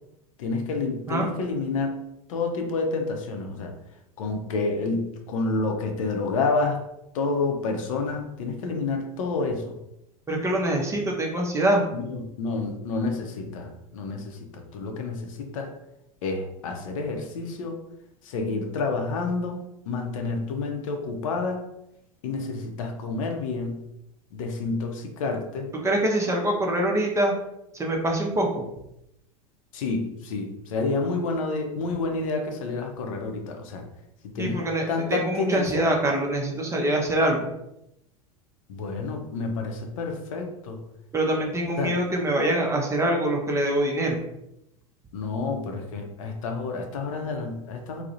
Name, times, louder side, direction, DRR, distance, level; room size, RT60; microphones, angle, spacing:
voice 1, 0.4-2.0 2.3-3.7 4.2-6.8 7.1-9.7 11.9-15.7 16.2-17.8 18.2-21.6 22.2-23.8 24.3-25.7 29.7-33.8 34.2-35.9 38.7-40.8 41.8-41.9 45.1-48.0, left 3 dB, 65° left, 3 dB, 0.5 m, -29 dB
voice 2, 10.3-11.8 25.8-27.3 27.7-28.7 34.4-37.5 41.1-44.2, right 1 dB, 15° right, 0 dB, 0.5 m, -24 dB
2.3 x 2.0 x 2.7 m, 0.83 s
hypercardioid pair, 85°, 18 cm